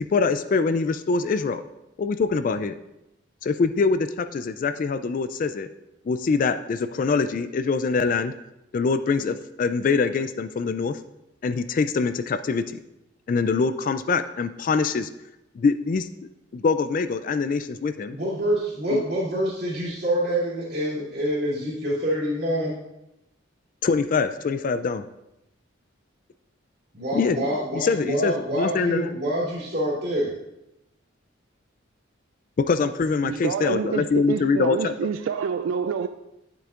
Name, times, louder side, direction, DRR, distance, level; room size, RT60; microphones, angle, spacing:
voice 1, 0.0-1.6 2.0-2.7 3.4-5.7 6.1-8.3 8.7-11.0 11.4-12.6 13.3-15.1 15.6-16.1 16.5-18.2 18.9-19.0 23.8-25.0 27.1-27.4 27.8-29.1 32.6-34.9, left 4 dB, 45° left, 0.3 m, -24 dB
voice 2, 18.1-22.8 26.9-30.3, right 1 dB, 55° right, 2.7 m, -26 dB
voice 3, 33.2-36.1, right 6 dB, 90° right, 0.3 m, -27 dB
9.6 x 7.7 x 2.5 m
head